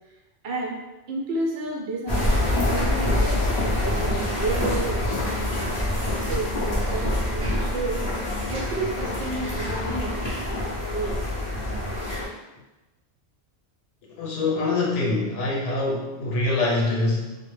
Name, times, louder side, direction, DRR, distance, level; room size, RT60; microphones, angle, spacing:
voice 1, 0.4-0.8 1.1-5.8 6.2-8.0 8.5-11.2 11.5-11.7, right 2 dB, 65° right, -2 dB, 0.8 m, -32 dB
sound 1, 2.1-12.3, left 1 dB, 30° left, 0.5 m, -26 dB
sound 2, 3.2-3.4 3.9-4.1 4.5-4.7 5.1-5.2 5.5-6.5 6.9-7.0 7.4-8.8, right 1 dB, 50° right, 0.4 m, -40 dB
voice 2, 14.2-17.4, left 2 dB, 85° left, -2 dB, 1.0 m, -24 dB
2.1 x 2.0 x 3.0 m, 1.1 s
omnidirectional pair, 1.2 m